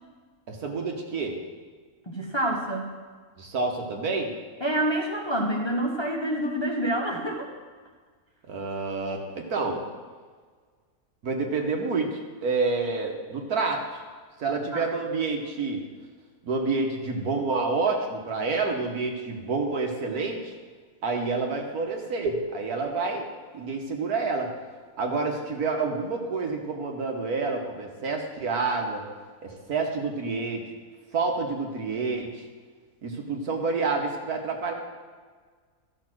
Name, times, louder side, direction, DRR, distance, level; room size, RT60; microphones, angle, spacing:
voice 1, 0.5-1.4 3.4-4.3 8.5-9.8 11.2-14.0 14.4-15.8 16.4-20.5 21.0-23.3 23.5-24.5 25.0-29.0 29.4-30.7 31.1-32.3 33.0-34.7, right 4 dB, 75° right, 2 dB, 1.8 m, -28 dB
voice 2, 2.1-3.0 4.6-7.5 14.7-14.9, right 1 dB, 20° left, -1 dB, 1.0 m, -27 dB
13.0 x 5.9 x 6.2 m, 1.5 s
omnidirectional pair, 1.6 m